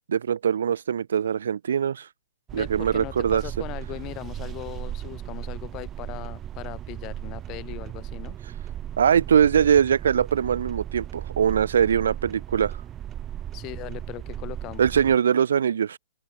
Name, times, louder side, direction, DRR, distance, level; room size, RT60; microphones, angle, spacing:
voice 1, 0.1-2.1 2.5-3.4 9.0-12.8 14.8-16.0, right 8 dB, 60° right, 1.8 m, -22 dB
voice 2, 2.5-8.4 13.5-14.8, left 20 dB, 30° left, 5.4 m, -39 dB
sound 1, 2.5-15.2, right 11 dB, 20° right, 2.9 m, -36 dB
figure-of-eight pair, 110°, 0 cm